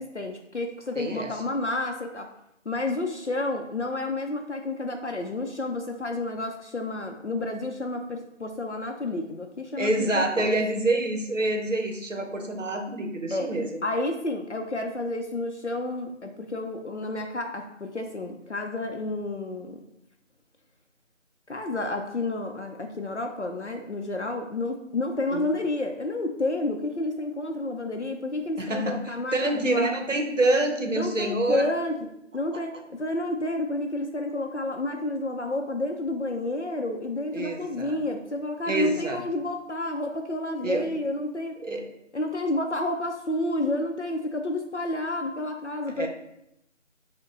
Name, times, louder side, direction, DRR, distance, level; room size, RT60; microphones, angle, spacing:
voice 1, 0.0-2.3 2.7-10.5 13.3-13.5 13.8-19.8 21.5-29.9 31.0-32.0 32.3-41.6 42.1-46.1, left 2 dB, 65° left, 3 dB, 0.6 m, -30 dB
voice 2, 1.0-1.3 9.8-13.7 25.3-25.5 28.6-31.6 37.3-38.0 38.7-39.2 40.6-40.9 41.6-41.9 46.0-46.1, right 2 dB, 75° right, 4 dB, 0.9 m, -27 dB
6.4 x 2.2 x 3.7 m, 0.81 s
figure-of-eight pair, 180°, 38 cm